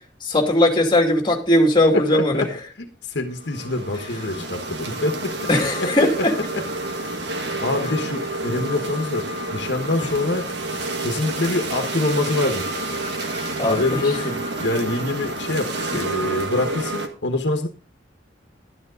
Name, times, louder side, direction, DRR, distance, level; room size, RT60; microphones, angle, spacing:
voice 1, 0.2-2.4 4.3-4.4 5.5-6.3 13.6-13.8, left 1 dB, 25° left, 2 dB, 2.5 m, -18 dB
voice 2, 1.9-2.5 2.8-5.5 5.8-6.3 6.5-6.6 7.0-10.5 11.0-12.7 13.7-17.7, left 2 dB, 70° left, 5 dB, 1.4 m, -25 dB
sound 1, 3.3-17.1, right 2 dB, 65° right, 1.7 m, -29 dB
12.0 x 9.7 x 3.9 m, 0.37 s
head